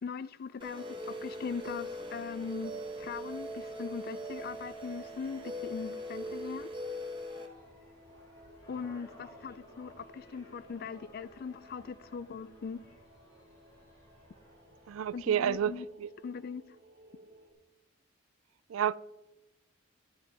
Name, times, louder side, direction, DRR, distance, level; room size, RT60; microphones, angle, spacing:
voice 1, 0.0-6.7 8.7-12.8 15.1-15.9 16.2-16.6, left 5 dB, 45° left, 0.3 m, -40 dB
sound 1, 0.6-7.5, equal, 25° right, 1.2 m, -41 dB
sound 2, 1.2-17.5, equal, 55° right, 1.6 m, -59 dB
sound 3, 1.4-15.8, left 1 dB, 20° left, 3.3 m, -59 dB
voice 2, 14.9-15.7 16.0-16.1 18.7-19.0, right 9 dB, 75° right, 0.3 m, -29 dB
11.5 x 9.9 x 3.4 m
head